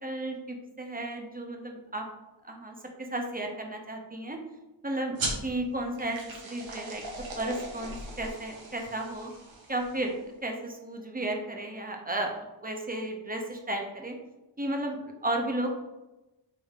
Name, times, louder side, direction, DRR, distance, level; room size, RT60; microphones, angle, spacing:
voice 1, 0.0-2.1 2.4-4.4 4.8-5.2 5.4-6.2 6.4-7.0 7.4-9.3 9.7-14.2 14.6-15.8, right 1 dB, 20° right, 2 dB, 0.9 m, -33 dB
sound 1, 5.2-10.2, right 2 dB, 80° right, 0.9 m, -39 dB
3.7 x 3.0 x 3.6 m, 1.0 s
cardioid pair, 40°, 46 cm